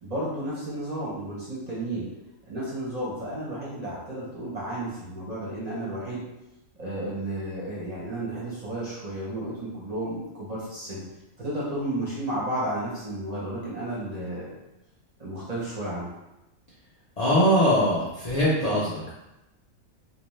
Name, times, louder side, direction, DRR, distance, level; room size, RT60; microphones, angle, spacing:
voice 1, 0.0-2.1 2.5-6.2 6.8-11.0 11.4-14.5 15.2-16.1, right 1 dB, 40° right, -7 dB, 0.7 m, -32 dB
voice 2, 17.2-19.1, equal, 65° left, -7 dB, 0.4 m, -22 dB
2.7 x 2.1 x 3.1 m, 0.92 s
omnidirectional pair, 1.4 m